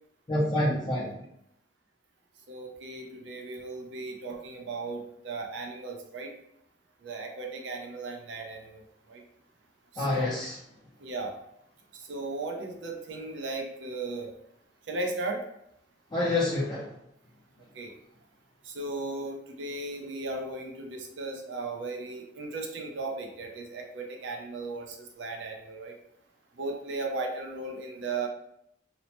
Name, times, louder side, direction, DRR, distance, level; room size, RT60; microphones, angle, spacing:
voice 1, 0.3-1.2 10.0-10.5 16.1-16.9, left 1 dB, 25° left, -7 dB, 0.5 m, -27 dB
voice 2, 2.5-6.3 7.0-8.8 9.1-9.2 9.9-10.4 11.0-11.3 12.0-14.3 14.9-15.4 17.7-17.9 18.6-25.9 26.6-28.3, right 2 dB, 75° right, 2 dB, 0.5 m, -36 dB
2.7 x 2.0 x 2.9 m, 0.77 s
head